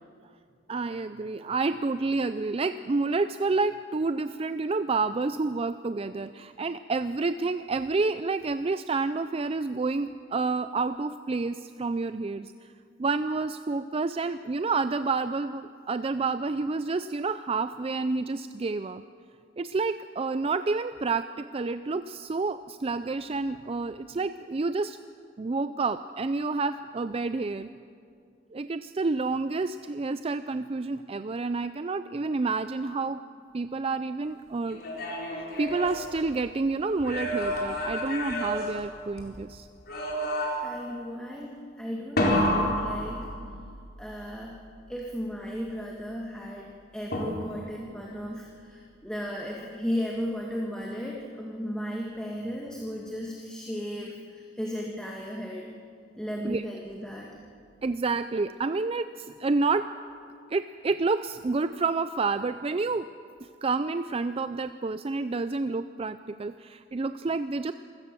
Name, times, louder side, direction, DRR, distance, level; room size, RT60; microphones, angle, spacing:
voice 1, 0.7-12.7 13.0-19.0 19.6-25.0 25.4-27.7 28.5-33.2 33.5-34.8 35.3-39.7 56.4-56.6 57.8-59.9 60.5-63.1 63.6-67.7, right 3 dB, 30° right, 11 dB, 0.4 m, -29 dB
sound 1, 34.7-36.6 37.0-39.4 39.9-40.8 42.2-43.8 47.1-47.8, equal, 55° left, 4.3 m, -30 dB
voice 2, 40.6-43.3 44.0-44.6 44.9-55.7 56.2-57.3, equal, 5° left, -2 dB, 2.0 m, -35 dB
27.0 x 16.5 x 6.9 m, 2.3 s
head